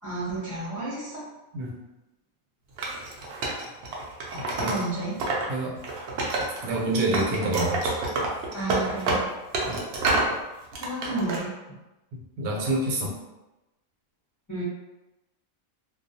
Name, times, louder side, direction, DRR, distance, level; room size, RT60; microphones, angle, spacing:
voice 1, 0.0-1.2 4.6-5.2 8.5-9.3 10.8-11.8 14.5-14.6, right 2 dB, 25° left, -10 dB, 0.4 m, -32 dB
Wood, 2.8-5.5 5.8-6.8 7.1-10.3 10.7-11.4, right 2 dB, 65° right, 0.6 m, -28 dB
voice 2, 5.5-5.8 6.6-8.0 9.7-9.8 12.1-13.2, right 1 dB, 90° right, -2 dB, 1.0 m, -27 dB
2.3 x 2.2 x 2.6 m, 1.0 s
omnidirectional pair, 1.4 m